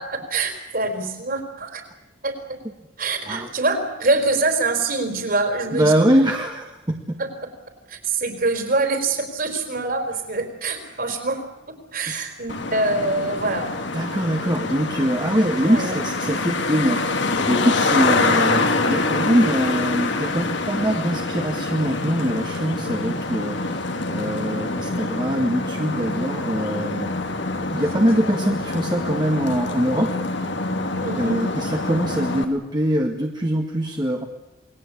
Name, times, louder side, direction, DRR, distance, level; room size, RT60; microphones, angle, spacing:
voice 1, 0.0-1.8 2.2-2.3 3.0-5.9 7.2-7.3 7.9-11.4 11.9-13.7 15.6-16.0 31.0-31.4, right 3 dB, 50° right, 6 dB, 4.7 m, -24 dB
voice 2, 5.7-6.9 12.1-12.2 13.9-27.1 27.7-30.1 31.2-34.2, equal, 25° right, 1 dB, 1.9 m, -23 dB
Traffic noise roadway noise, 12.5-32.4, left 3 dB, 65° left, 2.4 m, -25 dB
28.5 x 20.5 x 8.7 m, 0.95 s
head